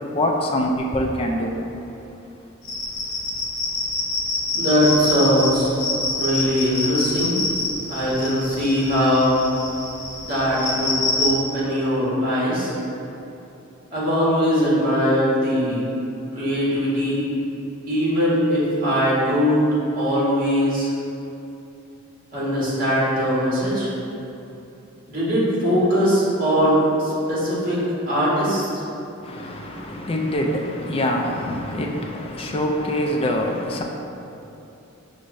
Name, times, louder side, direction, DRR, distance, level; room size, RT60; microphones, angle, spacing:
voice 1, 0.1-1.8 29.2-33.8, left 1 dB, 25° left, 1 dB, 0.3 m, -24 dB
sound 1, 2.6-11.3, left 2 dB, 75° left, 0.9 m, -26 dB
voice 2, 4.5-5.7 6.1-7.4 7.9-9.4 10.2-12.7 13.9-15.8 16.3-17.2 17.9-19.6 19.9-20.9 22.3-23.9 25.1-28.7, equal, 40° right, -9 dB, 1.3 m, -21 dB
5.5 x 2.6 x 3.1 m, 2.9 s
head